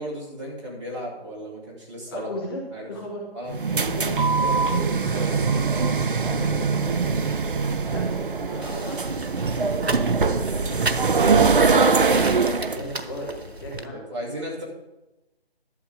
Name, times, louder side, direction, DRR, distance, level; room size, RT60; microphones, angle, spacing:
voice 1, 0.0-2.3 2.7-2.9 3.3-4.0 13.9-14.6, equal, 30° right, -2 dB, 2.5 m, -35 dB
voice 2, 2.1-3.2 3.7-4.2 4.4-7.5 7.9-9.5 10.2-11.2 11.6-14.0, equal, 25° left, -3 dB, 1.7 m, -36 dB
sound 1, 3.5-12.8, right 4 dB, 55° right, 0.6 m, -22 dB
sound 2, 8.6-13.9, right 2 dB, 80° right, 1.2 m, -34 dB
11.5 x 7.3 x 5.0 m, 1.0 s
figure-of-eight pair, 155°, 31 cm